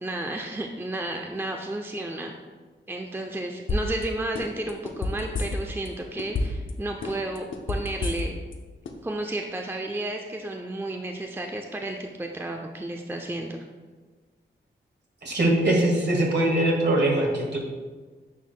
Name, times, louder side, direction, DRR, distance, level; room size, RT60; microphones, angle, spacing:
voice 1, 0.0-2.3 2.9-8.3 9.0-13.6, right 1 dB, 10° right, 2 dB, 0.5 m, -32 dB
sound 1, 3.7-4.0 4.3-5.9 6.2-6.7 7.0-8.5 8.8-8.9, left 2 dB, 70° left, 0.7 m, -28 dB
voice 2, 15.2-17.6, right 1 dB, 55° right, -1 dB, 1.7 m, -22 dB
9.3 x 4.5 x 2.2 m, 1.4 s
cardioid pair, 55°, 21 cm